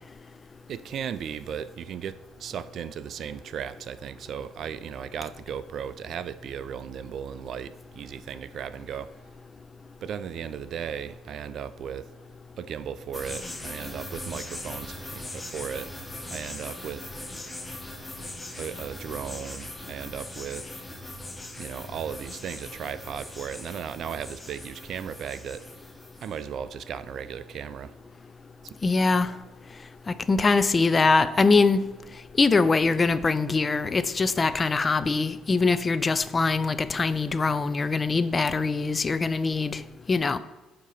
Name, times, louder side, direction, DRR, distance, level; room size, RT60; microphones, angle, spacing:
voice 1, 0.7-9.1 10.0-12.1 12.6-15.9 16.3-17.1 18.5-20.7 21.6-25.6 26.2-28.0 28.6-28.8, right 8 dB, 60° right, 14 dB, 0.4 m, -36 dB
sound 1, 13.1-26.4, left 1 dB, 15° left, 0.9 m, -40 dB
voice 2, 28.8-29.3 30.1-31.8 32.4-39.8 40.1-40.4, left 4 dB, 30° left, 13 dB, 0.4 m, -23 dB
8.1 x 2.9 x 5.6 m, 1.1 s
supercardioid pair, 70°, 0 cm